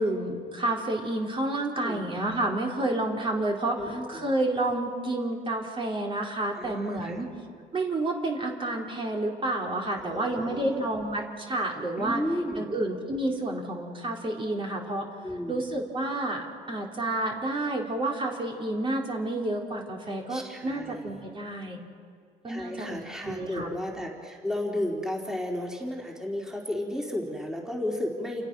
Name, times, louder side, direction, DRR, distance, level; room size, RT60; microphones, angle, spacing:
voice 1, 0.0-7.3 7.7-12.2 12.6-15.1 15.5-21.8 22.4-23.7, right 2 dB, 30° right, 0 dB, 3.9 m, -30 dB
voice 2, 1.8-2.1 3.8-4.2 6.5-7.2 9.9-10.9 12.0-12.7 15.2-15.8 20.3-21.2 22.5-28.4, left 1 dB, 5° right, -1 dB, 4.0 m, -33 dB
29.5 x 28.5 x 6.2 m, 2.2 s
cardioid pair, 110°, 17 cm